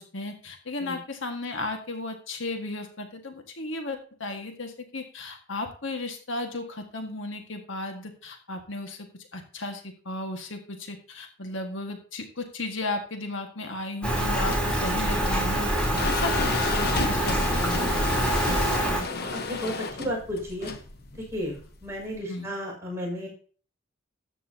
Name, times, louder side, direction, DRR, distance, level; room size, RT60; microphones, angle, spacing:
voice 1, 0.0-9.1 9.3-15.7 16.0-18.6 22.3-22.5, left 2 dB, 65° left, 4 dB, 1.7 m, -35 dB
Rain, 14.0-19.0, right 1 dB, 5° left, 3.4 m, -25 dB
sound 1, 14.5-22.2, left 3 dB, 45° left, 1.1 m, -33 dB
voice 2, 18.9-20.7 21.2-23.3, equal, 15° right, -3 dB, 6.1 m, -33 dB
13.5 x 9.1 x 2.8 m, 0.42 s
head